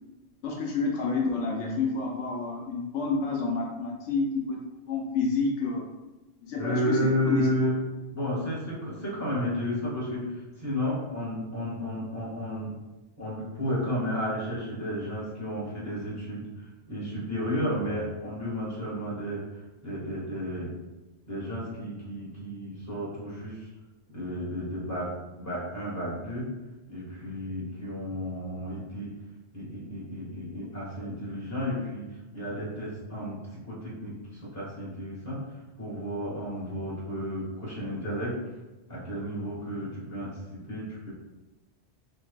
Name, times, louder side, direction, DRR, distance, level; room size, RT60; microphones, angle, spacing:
voice 1, 0.4-4.6 4.9-5.9 6.5-7.5, left 4 dB, 75° left, -1 dB, 0.9 m, -29 dB
voice 2, 6.6-7.7 8.1-12.7 13.2-16.5 16.9-20.7 21.3-23.7 24.1-26.5 26.9-29.1 29.5-32.1 32.3-35.4 35.8-38.3 38.9-41.1, equal, 15° left, -7 dB, 1.4 m, -32 dB
5.7 x 3.2 x 2.2 m, 1.1 s
omnidirectional pair, 1.3 m